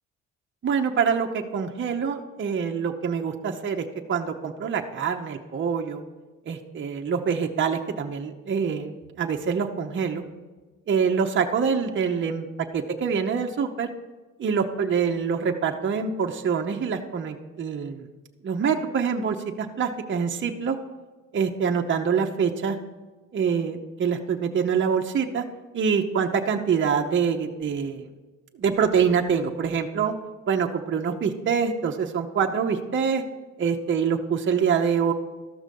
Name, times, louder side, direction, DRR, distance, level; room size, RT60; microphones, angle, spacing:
voice 1, 0.6-6.0 6.5-10.2 10.9-12.5 12.7-13.9 14.4-18.1 18.4-20.8 21.3-22.8 23.3-25.4 25.7-28.1 28.6-30.1 30.5-33.2 33.6-35.1, right 6 dB, 40° right, 3 dB, 0.8 m, -25 dB
13.0 x 6.1 x 5.3 m, 1.3 s
cardioid pair, 90°, 30 cm